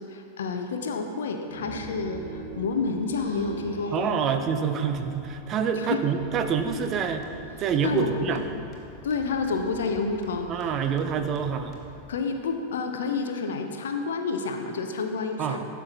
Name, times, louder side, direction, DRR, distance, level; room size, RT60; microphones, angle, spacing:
voice 1, 0.1-4.2 5.7-6.0 7.8-8.4 9.0-10.5 12.1-15.6, left 4 dB, 60° left, 5 dB, 0.5 m, -29 dB
sound 1, 1.5-9.8, right 3 dB, 70° right, 1.4 m, -44 dB
voice 2, 3.9-7.3 7.6-8.4 10.5-11.7 15.4-15.6, right 7 dB, 30° right, 7 dB, 0.5 m, -26 dB
sound 2, 6.1-12.1, left 2 dB, 25° left, 1.1 m, -47 dB
12.0 x 5.8 x 2.4 m, 2.6 s
figure-of-eight pair, 90°, 0 cm